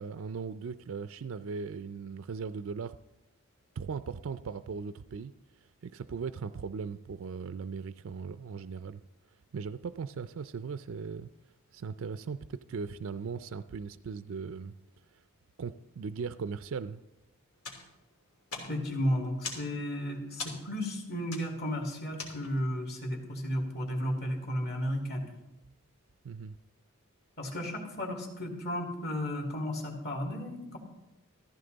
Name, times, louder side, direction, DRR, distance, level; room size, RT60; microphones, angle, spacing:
voice 1, 0.0-3.0 3.8-5.3 5.8-9.0 9.5-11.3 11.7-14.7 15.6-17.0 26.2-26.6, right 5 dB, 65° right, 12 dB, 0.4 m, -38 dB
sound 1, 17.6-22.8, left 4 dB, 90° left, 3.2 m, -44 dB
voice 2, 18.6-25.2 27.4-30.8, equal, 45° left, 1 dB, 2.6 m, -33 dB
14.5 x 14.5 x 4.0 m, 0.97 s
head